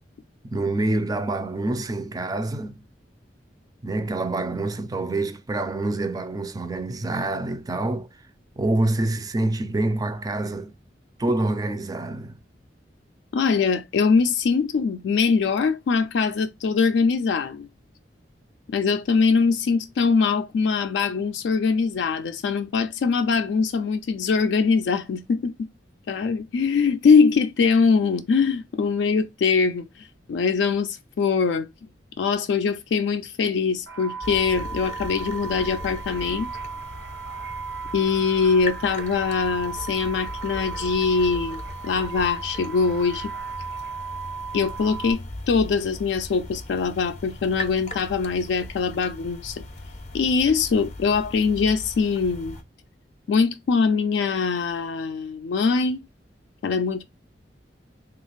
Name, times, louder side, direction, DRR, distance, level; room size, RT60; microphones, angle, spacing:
voice 1, 0.5-2.8 3.8-8.1 8.6-10.7 11.2-12.4, right 2 dB, 20° right, 0.4 m, -26 dB
voice 2, 13.3-17.7 18.7-25.5 26.1-31.7 32.2-36.5 37.9-43.3 44.5-49.6 50.1-52.6 53.3-56.0 56.6-57.0, left 5 dB, 85° left, 0.3 m, -22 dB
sound 1, 33.9-45.1, right 5 dB, 80° right, 0.9 m, -36 dB
sound 2, 34.2-52.6, left 1 dB, 40° left, 0.6 m, -39 dB
3.1 x 2.4 x 3.1 m
head